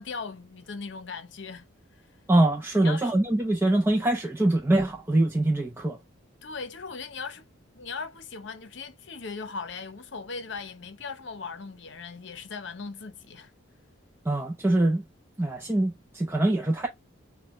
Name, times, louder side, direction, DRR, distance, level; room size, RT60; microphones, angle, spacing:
voice 1, 0.0-1.7 2.7-3.1 6.4-7.5 7.7-13.5, left 4 dB, 60° left, 0.7 m, -38 dB
voice 2, 2.3-6.0 14.3-15.0 15.4-16.9, right 1 dB, 10° right, 0.5 m, -23 dB
6.6 x 2.2 x 3.0 m
head